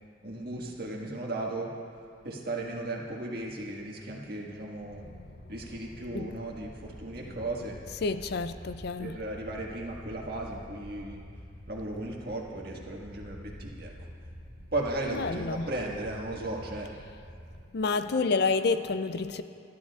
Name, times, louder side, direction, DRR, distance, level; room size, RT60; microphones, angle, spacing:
voice 1, 0.2-1.7 2.2-5.0 5.5-7.8 9.0-11.2 11.7-14.1 14.7-17.0, right 2 dB, 50° right, -1 dB, 1.6 m, -36 dB
sound 1, 4.9-17.6, equal, 25° right, 1.4 m, -47 dB
voice 2, 8.0-9.2 15.1-15.7 17.7-19.4, left 4 dB, 55° left, 11 dB, 0.4 m, -29 dB
27.5 x 11.5 x 2.4 m, 2.4 s
head